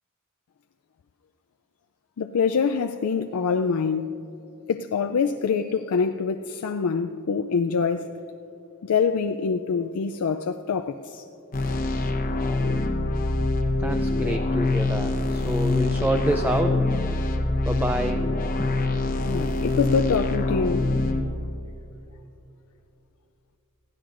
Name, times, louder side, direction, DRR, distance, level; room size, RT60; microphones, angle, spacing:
voice 1, 2.2-4.2 4.7-8.1 8.8-11.2 19.3-20.9, left 5 dB, 75° left, 0.4 m, -25 dB
sound 1, 11.5-21.2, left 2 dB, 40° left, 0.9 m, -25 dB
voice 2, 13.8-16.8 17.7-18.2 18.6-18.7, right 1 dB, 10° right, 0.4 m, -27 dB
21.5 x 15.5 x 2.5 m
head